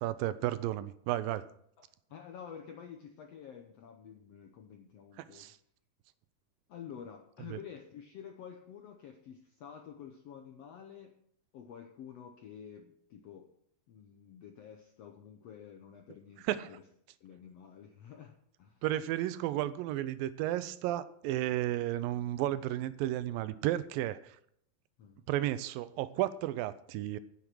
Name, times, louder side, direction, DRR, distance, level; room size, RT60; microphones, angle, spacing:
voice 1, 0.0-1.5 5.2-5.6 7.5-7.6 16.4-16.7 18.8-24.4 25.3-27.2, right 14 dB, 85° right, 15 dB, 2.3 m, -33 dB
voice 2, 1.8-5.5 6.7-11.1 11.5-13.5 13.9-16.8 17.2-18.8 25.0-25.3, left 8 dB, 75° left, 4 dB, 1.4 m, -50 dB
9.6 x 8.5 x 6.2 m, 0.69 s
omnidirectional pair, 4.1 m